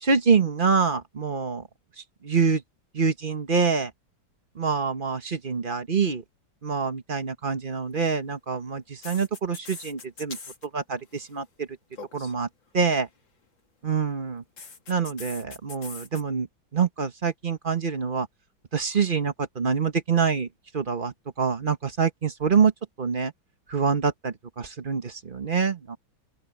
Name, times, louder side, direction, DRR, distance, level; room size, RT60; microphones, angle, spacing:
voice 1, 0.0-1.6 2.2-2.6 2.9-3.9 4.6-6.2 6.6-10.4 10.7-11.7 12.1-12.5 12.7-13.1 13.8-14.4 14.9-16.5 16.7-18.3 18.7-20.5 20.7-22.7 23.0-23.3 23.7-26.0, right 5 dB, 35° right, 1.0 m, -25 dB
sound 1, 7.9-8.1 9.0-10.7 10.9-11.3 11.9-12.3 14.6-16.2, left 4 dB, 75° left, 3.5 m, -42 dB
open air
omnidirectional pair, 2.1 m